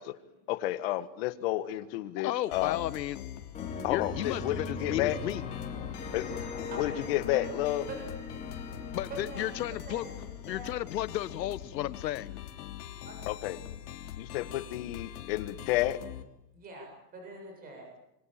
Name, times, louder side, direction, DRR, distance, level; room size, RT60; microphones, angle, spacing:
voice 1, 0.5-2.8 3.8-5.2 6.1-7.8 13.3-13.6 14.2-16.0, left 15 dB, 35° left, 13 dB, 1.5 m, -31 dB
voice 2, 2.2-3.2 3.9-5.4 8.9-10.0 10.5-12.4, left 13 dB, 80° left, 16 dB, 1.6 m, -33 dB
sound 1, 2.5-16.2, left 11 dB, 65° left, 3.5 m, -43 dB
sound 2, 3.5-11.2, left 4 dB, 15° left, 3.8 m, -41 dB
voice 3, 3.7-5.0 6.2-7.4 7.9-8.0 9.1-9.4 9.7-10.7 13.0-13.3 16.5-17.9, right 2 dB, 15° right, 1 dB, 7.7 m, -46 dB
27.5 x 23.5 x 9.0 m, 0.84 s
supercardioid pair, 175°, 49 cm